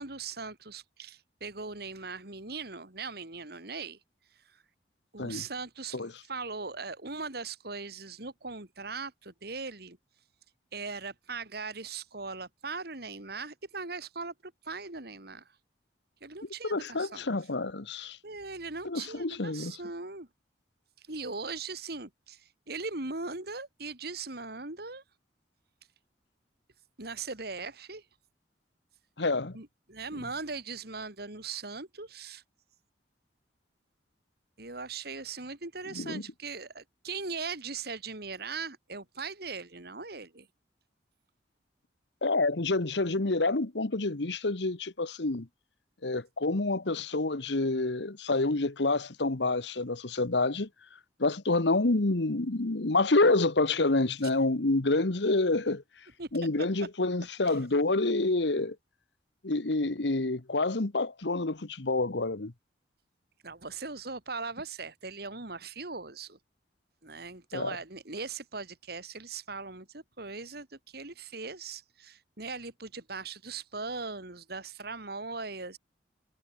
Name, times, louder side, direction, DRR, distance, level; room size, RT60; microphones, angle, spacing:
voice 1, 0.0-4.0 4.5-4.6 5.1-10.0 10.7-15.4 16.2-17.2 18.2-20.3 21.1-25.0 27.0-28.0 29.5-32.4 34.6-40.5 56.2-56.3 57.4-57.6 63.4-66.4 67.0-75.8, right 4 dB, 60° right, 3.2 m, -39 dB
voice 2, 16.6-18.2 18.8-19.8 29.2-29.6 35.9-36.2 42.2-45.5 46.0-50.7 51.2-55.8 56.3-58.8 59.4-62.5 67.5-67.8, left 2 dB, 75° left, 1.3 m, -28 dB
head